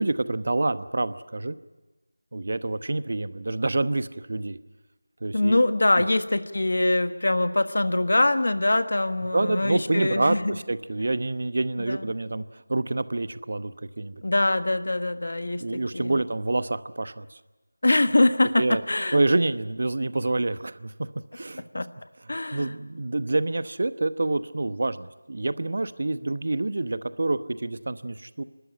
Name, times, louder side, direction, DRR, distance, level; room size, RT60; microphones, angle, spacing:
voice 1, 0.0-1.6 2.3-4.6 5.2-5.6 9.3-12.4 12.7-14.2 15.6-17.3 18.6-18.8 19.1-20.9 21.3-21.6 22.5-28.4, right 2 dB, 50° right, 13 dB, 1.0 m, -27 dB
voice 2, 5.3-10.6 11.8-12.1 14.2-16.2 17.8-19.2 21.7-21.9 22.3-22.7, left 2 dB, 60° left, 10 dB, 1.5 m, -23 dB
29.0 x 13.0 x 10.0 m, 1.1 s
figure-of-eight pair, 170°, 0 cm